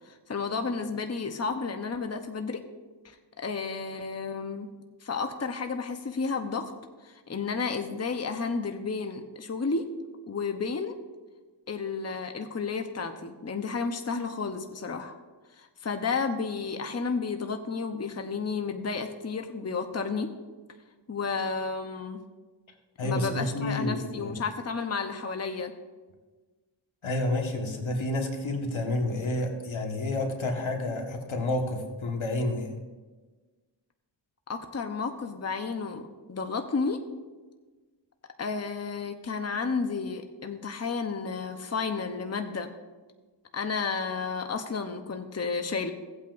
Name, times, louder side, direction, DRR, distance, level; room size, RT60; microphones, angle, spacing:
voice 1, 0.0-2.6 3.0-4.7 5.0-6.7 7.0-9.8 10.3-10.9 11.7-15.1 15.6-20.3 21.1-22.2 23.0-25.7 34.5-37.0 38.4-42.7 43.5-45.9, left 4 dB, 35° left, 6 dB, 0.9 m, -32 dB
voice 2, 23.0-24.4 27.0-32.7, left 1 dB, 80° left, 2 dB, 1.7 m, -30 dB
17.0 x 8.5 x 2.6 m, 1.3 s
cardioid pair, 55°, 47 cm